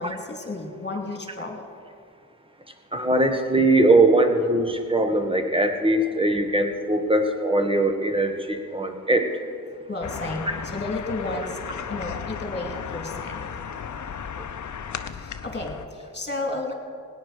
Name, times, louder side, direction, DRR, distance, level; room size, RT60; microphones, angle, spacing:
voice 1, 0.0-1.7 9.7-11.6 11.9-13.6 15.1-16.7, left 2 dB, 35° left, 2 dB, 2.6 m, -32 dB
voice 2, 2.9-9.3, right 2 dB, 15° right, 6 dB, 1.6 m, -21 dB
sound 1, 10.0-15.9, left 7 dB, 65° left, 0.7 m, -35 dB
17.0 x 9.6 x 5.0 m, 2.2 s
cardioid pair, 45°, 32 cm